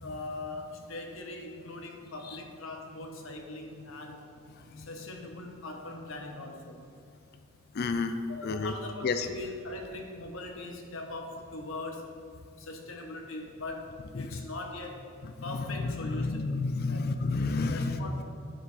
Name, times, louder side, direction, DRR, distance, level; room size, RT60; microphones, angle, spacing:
voice 1, 0.0-4.3 4.8-6.8 8.3-12.1 12.6-15.1 15.4-16.4 16.9-17.1 17.7-18.2, left 2 dB, 65° left, 2 dB, 1.2 m, -41 dB
voice 2, 7.7-8.1 8.4-8.7 9.0-9.3 16.0-18.0, left 3 dB, 45° left, 8 dB, 0.4 m, -30 dB
9.9 x 7.6 x 4.0 m, 2.5 s
head